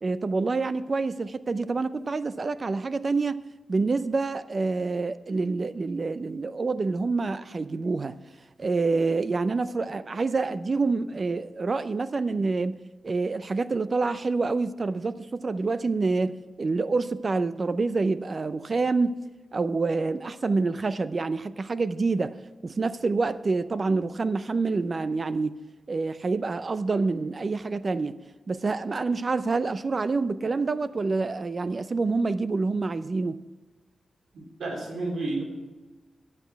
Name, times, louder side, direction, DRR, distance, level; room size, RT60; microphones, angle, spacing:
voice 1, 0.0-3.4 3.7-8.2 8.6-12.8 13.0-19.2 19.5-22.3 22.6-25.6 25.9-28.2 28.5-33.4, right 3 dB, 45° right, 14 dB, 0.6 m, -27 dB
voice 2, 34.3-35.4, right 2 dB, 85° right, 0 dB, 3.3 m, -31 dB
12.0 x 10.5 x 4.7 m, 1.2 s
cardioid pair, 80°, 0 cm